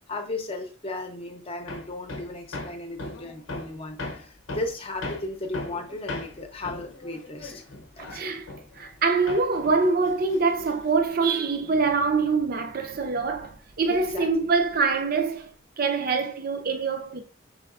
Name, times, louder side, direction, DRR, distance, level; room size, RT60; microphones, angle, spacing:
voice 1, 0.0-7.6 8.0-8.3 13.9-14.5, left 2 dB, 30° left, 0.7 m, -36 dB
Hammer, 1.7-9.0 9.3-11.0, left 2 dB, 80° left, 0.8 m, -38 dB
voice 2, 8.0-15.5 15.8-17.2, right 4 dB, 50° right, 0.6 m, -25 dB
6.1 x 3.5 x 2.4 m
head